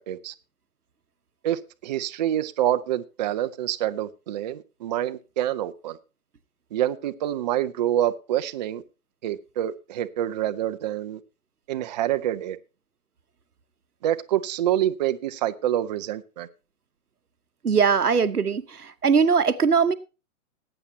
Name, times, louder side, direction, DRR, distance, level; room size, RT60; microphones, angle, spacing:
voice 1, 1.4-6.0 6.7-8.8 9.2-11.2 11.7-12.6 14.0-16.5, right 12 dB, 30° right, 0.6 m, -27 dB
voice 2, 17.6-19.9, right 6 dB, 85° right, 1.0 m, -21 dB
19.0 x 8.9 x 2.8 m
figure-of-eight pair, 120°, 44 cm